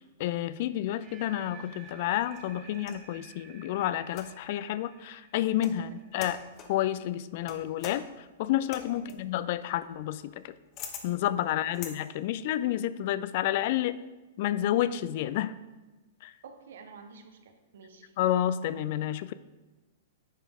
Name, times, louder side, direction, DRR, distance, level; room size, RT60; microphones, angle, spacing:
voice 1, 0.0-6.4 6.7-10.5 11.0-14.0 14.4-15.6 16.2-16.3 18.2-19.3, left 12 dB, 50° left, 14 dB, 0.3 m, -30 dB
sound 1, 0.8-6.8, right 6 dB, 30° right, 1.1 m, -53 dB
sound 2, 1.8-3.1 4.1-4.6 5.4-5.8 6.2-6.8 7.5-12.0, left 7 dB, 35° left, 1.0 m, -45 dB
voice 2, 11.4-11.8 16.4-18.2, right 5 dB, 65° right, 7 dB, 0.9 m, -51 dB
9.9 x 5.1 x 3.6 m, 1.1 s
figure-of-eight pair, 105°, 0 cm